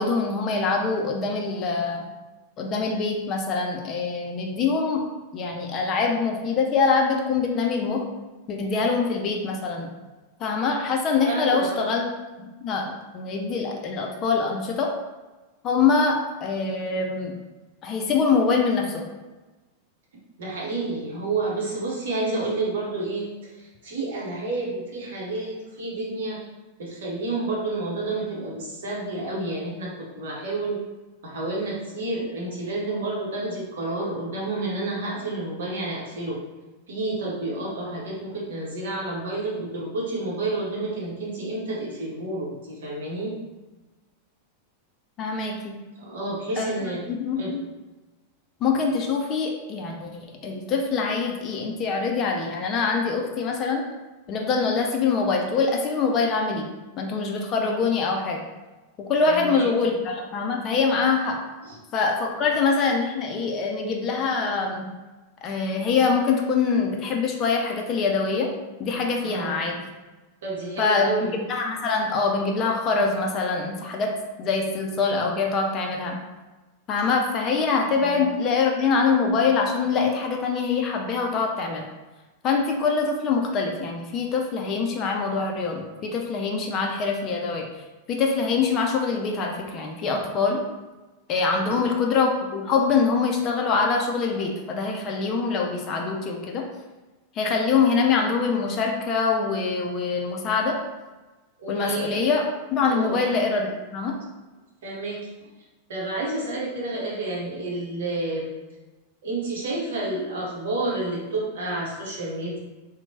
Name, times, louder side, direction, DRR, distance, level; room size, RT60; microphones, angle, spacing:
voice 1, 0.0-2.0 2.6-5.0 5.3-8.0 8.5-9.9 10.4-12.1 12.4-14.9 15.6-17.3 17.8-19.0 45.2-45.8 46.6-47.6 48.6-53.8 54.3-56.7 57.0-58.4 59.0-61.4 61.9-64.8 65.4-68.5 68.8-69.9 70.8-74.1 74.4-76.2 76.9-81.9 82.4-87.7 88.1-90.6 91.3-96.6 97.3-100.8 101.7-104.2, left 4 dB, 35° left, 1 dB, 0.4 m, -24 dB
voice 2, 11.2-12.0 20.4-26.4 26.8-30.8 31.2-36.4 36.9-43.4 46.0-47.0 47.4-47.6 59.2-59.7 61.6-61.8 69.2-69.7 70.4-71.3 78.0-78.2 91.6-91.9 101.6-102.2 102.9-103.2 104.8-105.2 105.9-108.6 109.2-112.6, right 2 dB, 60° right, -4 dB, 0.8 m, -30 dB
2.9 x 2.1 x 2.7 m, 1.2 s
figure-of-eight pair, 90°, 0 cm